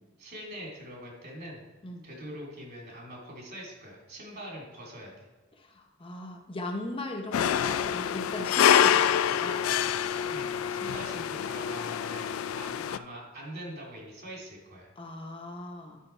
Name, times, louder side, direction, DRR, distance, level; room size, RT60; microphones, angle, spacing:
voice 1, 0.2-1.6 2.0-5.3 10.3-14.9, equal, 50° right, -2 dB, 2.7 m, -43 dB
voice 2, 5.6-9.6 15.0-16.0, left 2 dB, 25° left, 1 dB, 0.8 m, -38 dB
sound 1, 7.3-13.0, left 9 dB, 80° left, 0.3 m, -26 dB
10.0 x 5.1 x 4.4 m, 1.2 s
head